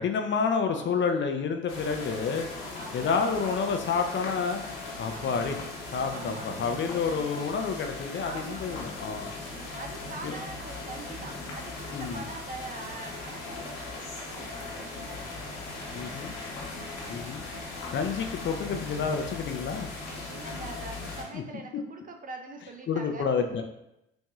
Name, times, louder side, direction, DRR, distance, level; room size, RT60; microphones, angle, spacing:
voice 1, 0.0-2.5 2.9-4.6 5.0-5.6 5.9-9.3 10.2-10.3 11.9-12.3 15.9-16.4 17.1-17.5 17.9-19.9 21.3-21.4 22.9-23.6, left 5 dB, 40° left, 5 dB, 0.6 m, -29 dB
voice 2, 0.7-1.1 2.7-3.4 5.1-5.4 6.1-6.5 8.2-9.1 9.4-15.5 16.0-16.2 17.0-17.5 19.9-23.3, right 3 dB, 30° right, 4 dB, 0.6 m, -44 dB
sound 1, 1.7-21.2, left 3 dB, 75° left, 1.2 m, -39 dB
6.0 x 2.6 x 2.4 m, 0.84 s
hypercardioid pair, 65°, 30 cm